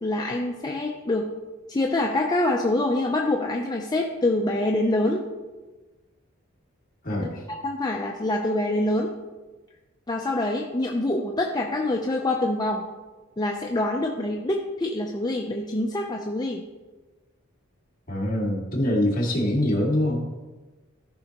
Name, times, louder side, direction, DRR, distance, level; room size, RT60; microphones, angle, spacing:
voice 1, 0.0-1.3 1.7-5.2 7.5-9.1 10.1-12.8 13.4-16.6, left 1 dB, 20° left, 1 dB, 0.5 m, -25 dB
voice 2, 7.0-7.4 18.1-20.3, left 1 dB, 40° left, -4 dB, 2.1 m, -24 dB
14.0 x 5.4 x 2.9 m, 1.2 s
head